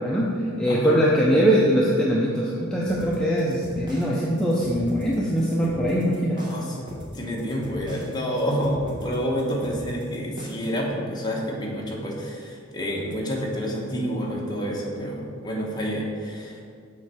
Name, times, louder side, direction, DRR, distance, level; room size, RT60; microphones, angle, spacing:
voice 1, 0.0-6.5, equal, 5° left, -6 dB, 0.6 m, -22 dB
voice 2, 0.7-1.0 6.4-16.6, equal, 20° left, -3 dB, 1.1 m, -29 dB
sound 1, 2.9-10.8, equal, 20° right, 1.1 m, -38 dB
7.2 x 3.2 x 6.1 m, 2.2 s
head